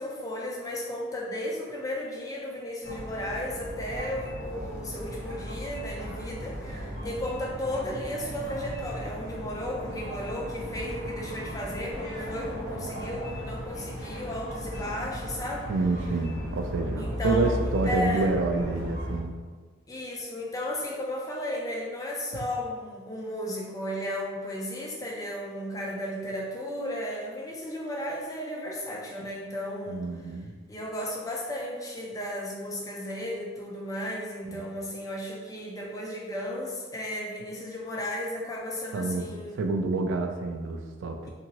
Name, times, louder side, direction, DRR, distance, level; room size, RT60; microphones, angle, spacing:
voice 1, 0.0-15.7 17.0-18.2 19.9-30.1 30.7-39.7, left 1 dB, 15° left, -1 dB, 0.3 m, -34 dB
sound 1, 2.8-19.2, equal, 85° left, 0.7 m, -36 dB
voice 2, 15.7-19.3 29.9-30.5 34.5-34.6 38.9-39.3 39.6-41.3, right 3 dB, 70° right, 4 dB, 0.3 m, -28 dB
2.8 x 2.6 x 2.8 m, 1.5 s
head